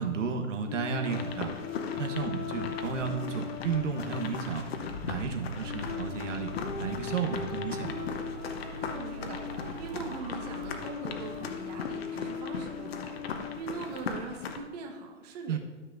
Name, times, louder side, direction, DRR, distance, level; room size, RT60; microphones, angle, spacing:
voice 1, 0.0-1.5 2.0-4.7 5.0-6.5 6.8-8.1 15.5-15.6, right 6 dB, 70° right, 5 dB, 1.2 m, -32 dB
sound 1, 0.7-13.6, left 8 dB, 75° left, 0.9 m, -40 dB
sound 2, 1.0-14.6, left 5 dB, 50° left, 1.0 m, -39 dB
sound 3, 4.8-11.8, right 4 dB, 50° right, 1.5 m, -45 dB
voice 2, 8.7-15.6, right 4 dB, 30° right, 2 dB, 1.1 m, -41 dB
13.0 x 6.6 x 2.6 m, 1.3 s
hypercardioid pair, 150°, 39 cm